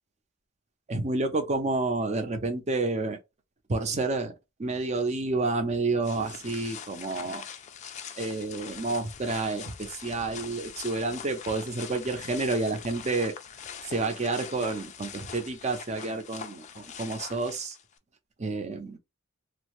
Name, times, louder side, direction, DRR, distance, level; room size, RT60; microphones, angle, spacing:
voice 1, 0.9-3.2 3.7-4.3 4.6-7.5 8.2-13.3 13.8-17.8 18.4-19.0, right 3 dB, 35° right, 0.6 m, -29 dB
sound 1, 6.0-18.0, left 7 dB, 35° left, 0.3 m, -43 dB
2.6 x 2.0 x 2.9 m
head